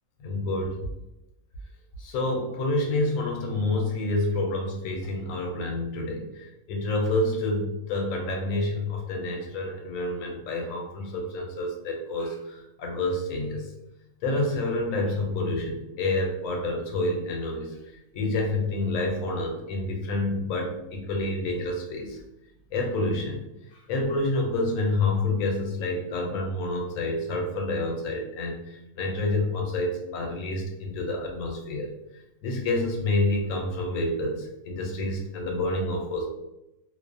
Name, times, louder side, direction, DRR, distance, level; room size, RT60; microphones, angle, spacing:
voice 1, 0.2-0.8 2.0-13.6 14.2-17.7 18.1-22.2 22.7-23.4 23.9-31.9 32.4-36.3, left 2 dB, 85° left, 2 dB, 1.0 m, -28 dB
2.4 x 2.0 x 2.5 m, 0.90 s
omnidirectional pair, 1.4 m